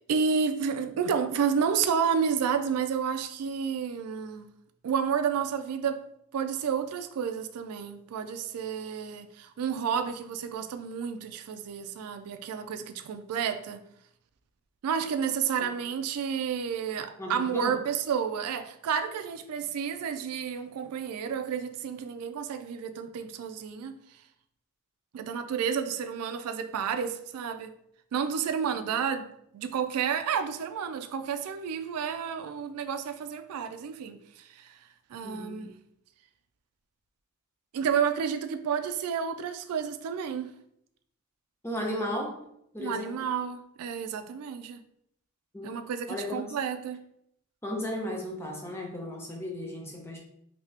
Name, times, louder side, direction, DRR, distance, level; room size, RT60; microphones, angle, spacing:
voice 1, 0.1-4.5 4.8-6.0 6.3-13.8 14.8-24.0 25.1-27.7 28.1-34.7 35.1-35.7 37.7-40.5 42.8-44.8 45.6-47.0, right 7 dB, 85° right, 0.3 m, -31 dB
voice 2, 17.2-17.8 28.7-28.8 35.2-35.7 41.6-42.4 42.7-43.3 45.5-45.8 46.1-46.6 47.6-50.2, left 1 dB, 10° left, 0.6 m, -35 dB
3.3 x 2.8 x 2.8 m
head